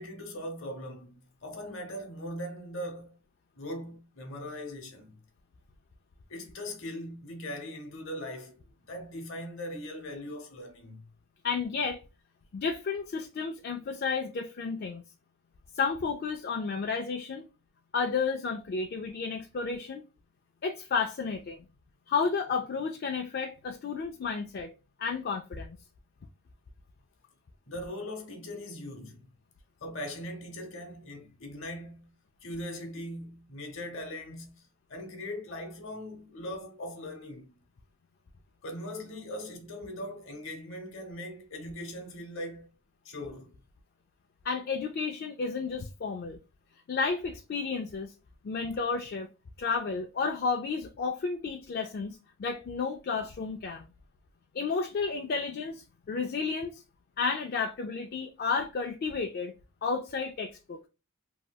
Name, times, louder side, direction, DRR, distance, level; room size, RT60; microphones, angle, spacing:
voice 1, 0.0-3.2 3.6-5.2 6.3-11.1 27.7-29.2 29.8-32.1 32.4-37.6 38.6-42.7 43.0-43.6, left 1 dB, 65° left, 0.9 m, -40 dB
voice 2, 11.4-12.0 12.5-15.0 15.8-17.4 17.9-20.0 20.6-21.6 22.1-24.7 25.0-25.8 44.4-46.4 46.9-48.1 48.4-49.3 49.6-53.9 54.5-56.7 57.2-59.5 59.8-60.8, left 5 dB, 45° left, 0.3 m, -32 dB
3.1 x 2.7 x 2.2 m
head